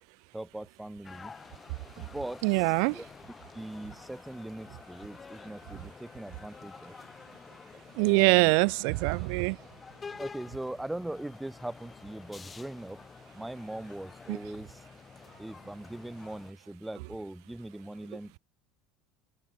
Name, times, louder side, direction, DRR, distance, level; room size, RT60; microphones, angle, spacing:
voice 1, 0.3-1.3 2.0-3.1 3.5-7.0 8.0-8.5 10.2-14.8 15.4-18.4, right 1 dB, 5° right, 1.2 m, -41 dB
sound 1, 1.0-16.5, left 5 dB, 20° left, 2.1 m, -49 dB
voice 2, 2.4-3.0 8.0-9.6, right 40 dB or more, 75° right, 0.5 m, -24 dB
open air
supercardioid pair, 125°, 0 cm